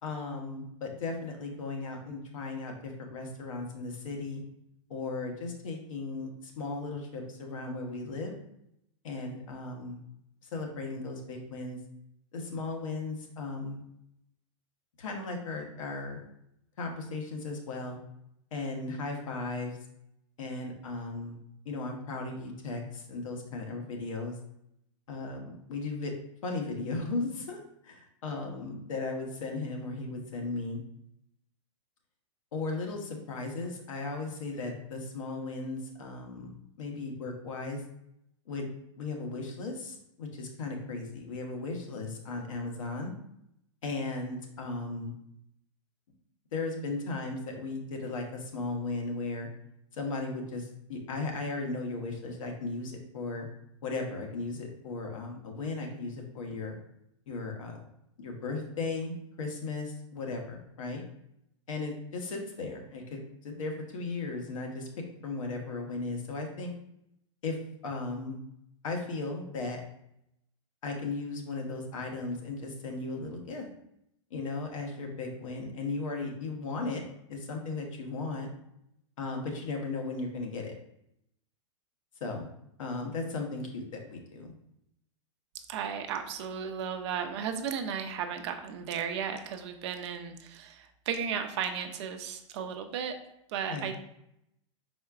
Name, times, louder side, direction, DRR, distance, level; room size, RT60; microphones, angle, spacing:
voice 1, 0.0-4.4 4.9-8.3 9.0-10.0 10.5-11.8 12.3-13.8 15.0-16.2 16.8-18.0 18.5-19.8 20.4-24.3 25.1-26.1 26.4-30.8 32.5-37.8 38.5-38.7 39.0-43.1 43.8-45.2 46.5-49.5 49.9-53.5 53.8-56.7 57.3-57.8 58.2-61.0 61.7-64.9 65.2-66.7 67.4-67.6 67.8-68.4 68.8-69.8 70.8-73.6 74.3-77.0 77.3-78.5 79.2-80.7 82.2-82.5 82.8-84.5 93.7-93.9, left 3 dB, 75° left, 2 dB, 1.1 m, -36 dB
voice 2, 85.7-93.2 93.5-94.0, right 7 dB, 55° right, 6 dB, 0.6 m, -35 dB
4.5 x 4.2 x 2.4 m, 0.79 s
hypercardioid pair, 120°, 17 cm